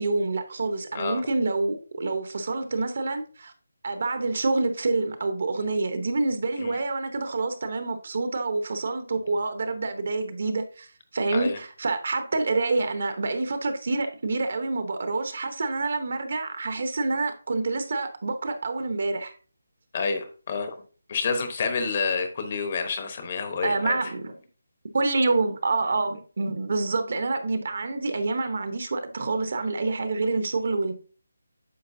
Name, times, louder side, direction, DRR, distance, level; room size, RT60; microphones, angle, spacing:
voice 1, 0.0-3.5 3.8-10.9 11.1-19.3 23.6-24.3 24.9-30.9, right 3 dB, 40° right, 0.9 m, -27 dB
voice 2, 19.9-20.7 21.1-24.0, left 5 dB, 25° left, 1.0 m, -28 dB
9.5 x 6.2 x 2.7 m
figure-of-eight pair, 175°, 0 cm